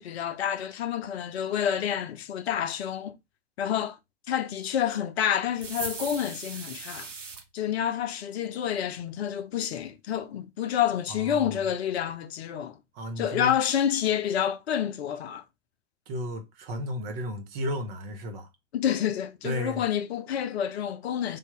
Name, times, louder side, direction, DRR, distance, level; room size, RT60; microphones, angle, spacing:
voice 1, 0.0-3.2 3.6-4.0 4.3-7.1 7.5-12.8 13.2-15.4 18.7-21.4, left 9 dB, 60° left, 0.6 m, -28 dB
sound 1, 5.6-7.4, right 4 dB, 80° right, 0.8 m, -38 dB
voice 2, 11.1-11.6 12.9-13.5 16.1-18.5 19.4-19.8, equal, 45° right, 1.2 m, -34 dB
3.5 x 2.7 x 3.6 m
figure-of-eight pair, 90°, 37 cm